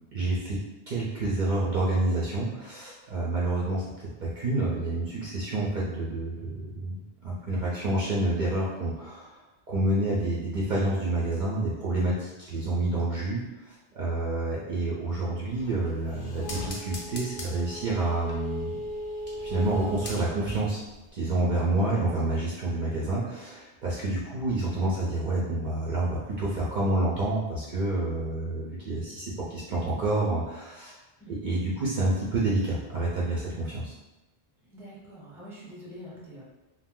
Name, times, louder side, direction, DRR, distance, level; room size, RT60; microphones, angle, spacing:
voice 1, 0.1-0.6 0.9-3.8 4.2-9.4 9.7-18.8 19.4-20.8 21.1-31.0 31.3-34.0, right 2 dB, 55° right, -6 dB, 0.6 m, -28 dB
sound 1, 15.5-20.6 21.0-21.1, equal, 55° left, 0.6 m, -37 dB
voice 2, 34.7-36.4, equal, 5° right, -6 dB, 0.6 m, -45 dB
2.6 x 2.1 x 3.6 m, 1.1 s
omnidirectional pair, 1.1 m